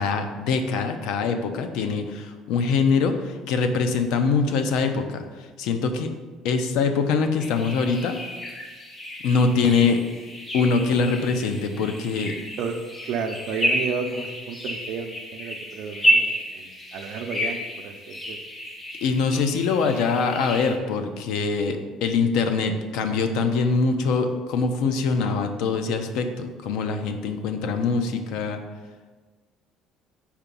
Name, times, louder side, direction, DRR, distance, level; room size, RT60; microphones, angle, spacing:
voice 1, 0.0-6.1 6.4-8.2 9.2-10.0 10.5-12.4 19.0-28.6, left 4 dB, 75° left, 7 dB, 0.6 m, -23 dB
sound 1, 7.4-20.8, equal, 20° left, 0.8 m, -30 dB
voice 2, 13.1-18.4, right 5 dB, 60° right, 6 dB, 0.6 m, -32 dB
4.9 x 4.4 x 5.3 m, 1.3 s
cardioid pair, 150°, 0 cm